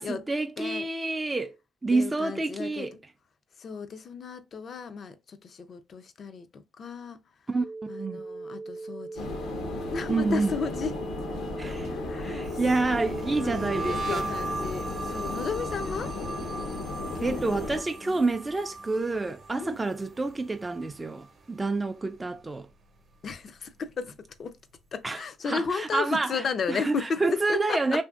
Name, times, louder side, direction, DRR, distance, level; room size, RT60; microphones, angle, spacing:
voice 1, 0.0-1.6 1.8-3.0 7.5-7.6 7.9-8.3 10.1-10.5 11.6-14.3 17.2-22.7 25.0-28.0, right 3 dB, 20° right, 0.3 m, -28 dB
voice 2, 0.6-0.9 1.9-3.0 3.6-7.2 7.9-9.4 9.9-10.9 11.9-12.4 13.4-13.5 13.8-16.1 17.1-17.5 18.0-18.2 19.6-19.9 23.2-24.6 24.9-28.0, left 5 dB, 50° left, 0.4 m, -34 dB
sound 1, 7.6-16.1, right 3 dB, 85° right, 0.5 m, -41 dB
sound 2, 9.2-17.8, left 3 dB, 80° left, 0.8 m, -35 dB
sound 3, 12.5-21.6 21.9-22.3 22.7-24.2, right 3 dB, 50° right, 0.7 m, -38 dB
2.8 x 2.5 x 2.3 m
cardioid pair, 90°, 0 cm